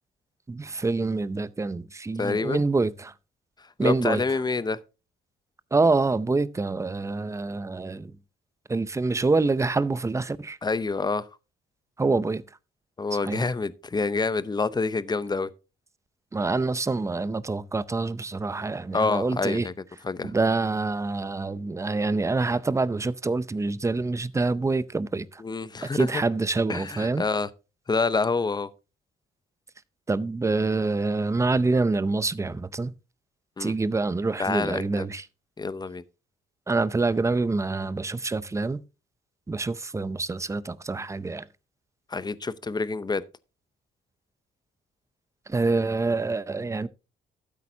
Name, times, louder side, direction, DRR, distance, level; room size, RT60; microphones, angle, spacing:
voice 1, 0.5-3.1 3.8-4.2 5.7-8.1 8.7-10.6 12.0-12.4 13.2-13.5 16.3-19.7 20.2-25.4 25.9-27.2 30.1-32.9 33.6-35.2 36.7-38.8 39.5-41.5 45.5-46.9, right 3 dB, 15° right, 0.5 m, -26 dB
voice 2, 2.2-2.6 3.6-4.8 10.6-11.3 13.0-15.5 18.9-19.7 20.0-20.3 25.4-26.2 26.7-27.5 27.9-28.7 33.6-33.7 34.4-35.1 35.6-36.0 42.1-43.2, left 4 dB, 20° left, 0.7 m, -27 dB
12.5 x 8.5 x 2.8 m
cardioid pair, 90°, 20 cm